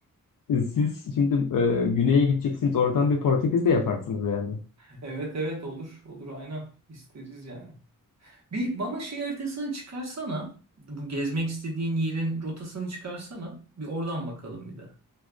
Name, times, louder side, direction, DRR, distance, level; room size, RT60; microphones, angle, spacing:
voice 1, 0.5-4.6, left 5 dB, 70° left, 0.6 m, -23 dB
voice 2, 4.8-7.8 8.2-14.9, right 2 dB, 50° right, 1.1 m, -33 dB
2.6 x 2.3 x 2.2 m
cardioid pair, 50°, 34 cm